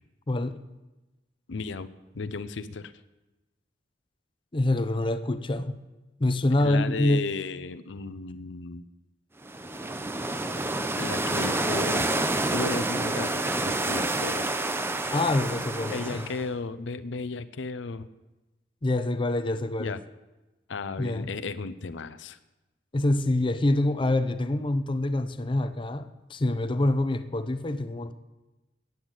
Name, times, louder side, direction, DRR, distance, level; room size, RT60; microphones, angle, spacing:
voice 1, 0.3-0.6 4.5-5.8 6.2-7.3 15.1-16.3 18.8-20.0 21.0-21.3 22.9-28.1, left 1 dB, 30° left, 0.6 m, -26 dB
voice 2, 1.5-1.9 2.1-2.9 6.6-8.9 11.0-12.0 12.5-13.3 13.6-14.5 15.9-18.1 19.8-20.0 20.7-22.4, left 4 dB, 85° left, 0.6 m, -34 dB
sound 1, 9.4-16.5, right 2 dB, 15° right, 0.6 m, -28 dB
9.3 x 8.1 x 8.8 m
head